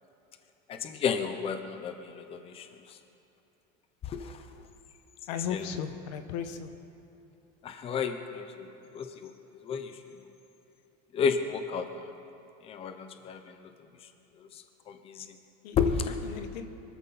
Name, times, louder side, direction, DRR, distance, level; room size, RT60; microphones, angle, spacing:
voice 1, 0.7-3.0 4.0-4.4 5.5-5.6 7.6-9.3 9.6-10.0 11.1-12.1 12.6-13.7 14.5-15.4 15.8-16.2, left 6 dB, 30° left, 8 dB, 0.9 m, -32 dB
voice 2, 5.3-6.7 15.6-15.8 16.2-16.7, left 7 dB, 85° left, 8 dB, 1.3 m, -35 dB
23.5 x 14.0 x 4.2 m, 2.9 s
cardioid pair, 155°, 21 cm